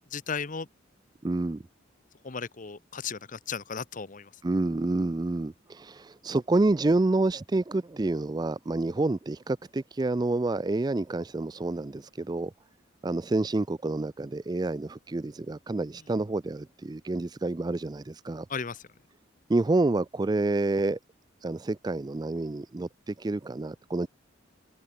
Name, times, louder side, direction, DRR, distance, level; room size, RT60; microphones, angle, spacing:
voice 1, 0.1-0.7 2.2-4.3 18.5-18.8, left 5 dB, 40° left, 0.8 m, -35 dB
voice 2, 1.2-1.6 4.4-12.5 13.0-18.5 19.5-21.0 21.4-24.1, right 2 dB, 20° right, 0.4 m, -28 dB
head